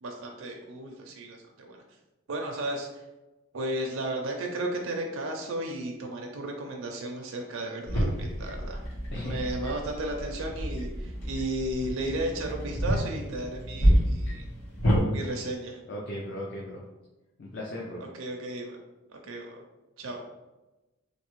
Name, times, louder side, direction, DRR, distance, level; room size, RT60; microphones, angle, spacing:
voice 1, 0.0-1.8 2.3-3.0 3.5-8.9 9.2-14.4 15.1-15.8 18.0-18.8 19.1-19.6 20.0-20.2, right 1 dB, 70° right, 1 dB, 0.4 m, -34 dB
sound 1, 7.9-15.0, equal, 85° left, 1.3 m, -28 dB
voice 2, 9.1-9.5 15.9-16.8 17.4-18.0, left 1 dB, 50° left, -3 dB, 0.5 m, -36 dB
3.2 x 2.7 x 3.0 m, 1.1 s
head